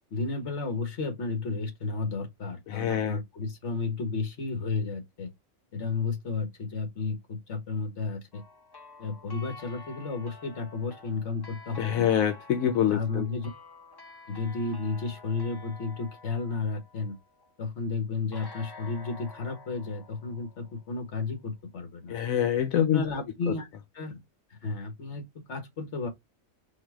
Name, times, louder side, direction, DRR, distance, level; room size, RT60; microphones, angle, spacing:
voice 1, 0.1-5.3 5.7-8.4 9.0-12.1 12.6-13.5 14.3-17.2 17.6-22.2 22.7-23.7 23.9-24.2 24.6-26.1, left 4 dB, 60° left, 1.7 m, -33 dB
voice 2, 2.7-3.2 11.8-13.3 22.1-23.0 23.5-23.6, left 9 dB, 85° left, 1.0 m, -25 dB
sound 1, 8.3-17.5 18.3-21.2, left 2 dB, 25° left, 0.6 m, -49 dB
4.5 x 2.2 x 4.6 m
omnidirectional pair, 1.4 m